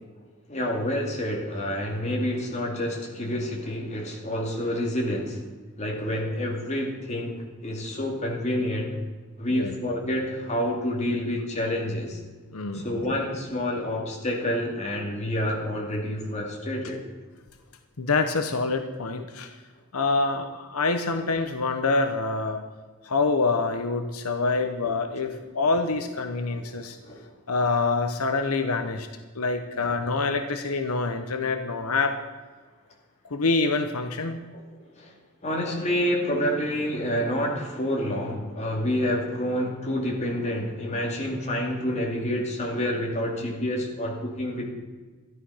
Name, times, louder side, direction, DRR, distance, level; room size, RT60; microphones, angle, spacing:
voice 1, 0.5-5.4 5.8-7.3 7.6-9.0 9.4-12.2 12.7-17.0 26.5-26.6 27.0-27.3 34.9-35.1 35.4-44.7, equal, 30° left, 0 dB, 2.4 m, -28 dB
voice 2, 12.5-13.0 18.0-19.5 19.9-22.6 23.0-27.0 27.5-29.1 29.3-32.2 33.3-34.4, left 3 dB, 80° left, 7 dB, 1.0 m, -26 dB
13.5 x 11.0 x 5.7 m, 1.4 s
head